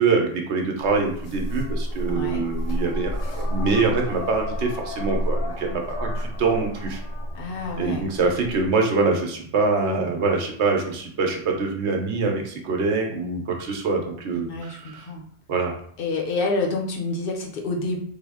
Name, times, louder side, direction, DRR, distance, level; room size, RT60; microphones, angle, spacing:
voice 1, 0.0-7.0 7.8-15.1 15.5-15.7, right 4 dB, 75° right, 2 dB, 1.0 m, -24 dB
sound 1, 0.8-8.7, equal, 80° left, 1.1 m, -30 dB
voice 2, 2.1-2.5 7.3-8.1 14.3-15.2 16.0-18.0, left 3 dB, 60° left, 0 dB, 0.7 m, -28 dB
3.6 x 2.1 x 3.4 m, 0.64 s
omnidirectional pair, 1.2 m